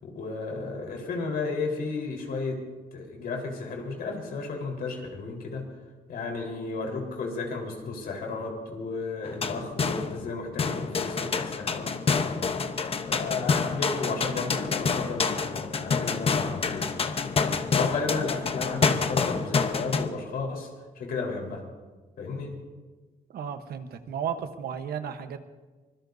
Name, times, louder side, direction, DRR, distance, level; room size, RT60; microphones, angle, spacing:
voice 1, 0.0-2.6 2.9-5.6 6.1-12.3 13.1-16.9 17.2-17.4 17.7-20.7 21.0-21.6 22.2-22.6, left 4 dB, 75° left, 0 dB, 4.2 m, -33 dB
sound 1, 9.3-10.3 10.6-20.1, left 5 dB, 40° left, 0.9 m, -27 dB
voice 2, 23.3-25.4, right 8 dB, 80° right, 8 dB, 1.1 m, -34 dB
24.5 x 21.0 x 2.7 m, 1.3 s
cardioid pair, 115°, 16 cm